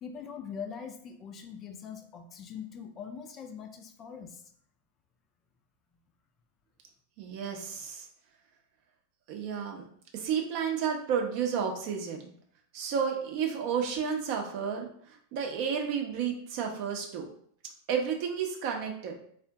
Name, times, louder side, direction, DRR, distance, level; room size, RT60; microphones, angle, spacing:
voice 1, 0.0-4.4, left 7 dB, 30° left, 5 dB, 0.3 m, -42 dB
voice 2, 7.2-8.1 9.3-9.8 10.1-12.3 12.7-17.3 17.9-19.1, right 7 dB, 45° right, 1 dB, 0.6 m, -31 dB
3.6 x 2.1 x 2.7 m, 0.64 s
figure-of-eight pair, 90°, 0 cm